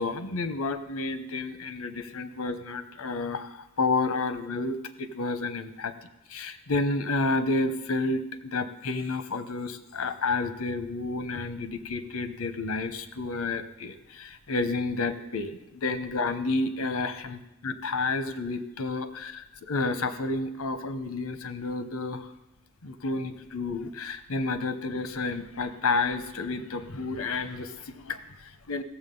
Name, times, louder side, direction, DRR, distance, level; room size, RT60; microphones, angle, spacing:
voice 1, 0.0-5.9 6.3-22.3 22.8-28.8, left 3 dB, 80° left, 10 dB, 0.9 m, -30 dB
16.0 x 7.1 x 5.4 m, 0.93 s
head